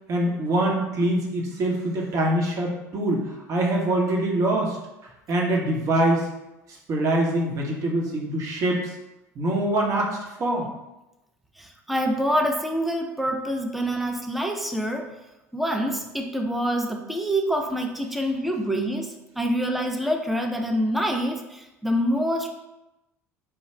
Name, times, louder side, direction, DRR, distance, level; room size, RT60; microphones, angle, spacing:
voice 1, 0.1-4.8 5.3-6.3 6.7-8.9 9.3-10.7, right 1 dB, 40° right, -1 dB, 1.0 m, -24 dB
voice 2, 11.6-15.1 15.5-22.5, equal, ahead, 2 dB, 0.5 m, -26 dB
4.6 x 2.2 x 3.3 m, 0.95 s
figure-of-eight pair, 65°, 8 cm